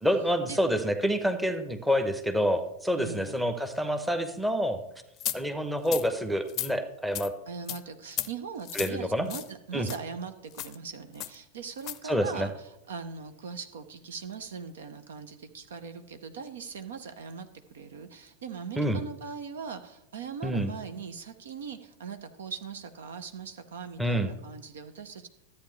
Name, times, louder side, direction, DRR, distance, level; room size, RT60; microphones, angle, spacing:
voice 1, 0.0-4.8 5.3-7.3 8.7-9.3 9.7-9.9 12.0-12.5 18.8-19.0 20.4-20.7 24.0-24.3, equal, 5° right, 8 dB, 0.9 m, -27 dB
voice 2, 3.0-3.5 7.5-25.3, right 6 dB, 60° right, 9 dB, 0.8 m, -40 dB
sound 1, 5.2-5.4 5.8-6.1 6.5-6.7 7.1-7.3 7.7-7.8 8.1-8.3 8.6-8.9 9.3-9.5 9.8-10.0 10.5-10.7 11.2-11.3 11.8-12.0, left 13 dB, 35° left, 0.6 m, -34 dB
13.5 x 8.5 x 3.2 m, 0.86 s
figure-of-eight pair, 90°, 0 cm